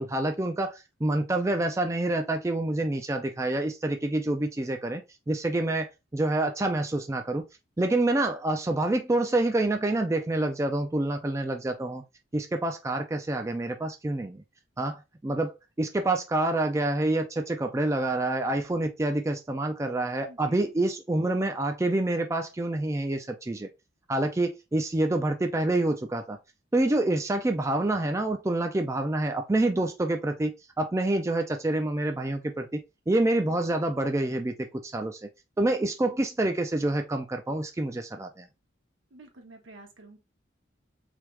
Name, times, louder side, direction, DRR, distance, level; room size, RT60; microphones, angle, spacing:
voice 1, 0.0-5.0 5.3-7.4 7.8-12.0 12.3-14.4 14.8-15.5 15.8-23.7 24.1-26.4 26.7-35.3 35.6-38.5, right 2 dB, 15° right, 0.3 m, -27 dB
voice 2, 20.3-20.6 39.1-40.2, right 2 dB, 75° right, 1.2 m, -49 dB
3.5 x 3.4 x 3.1 m
head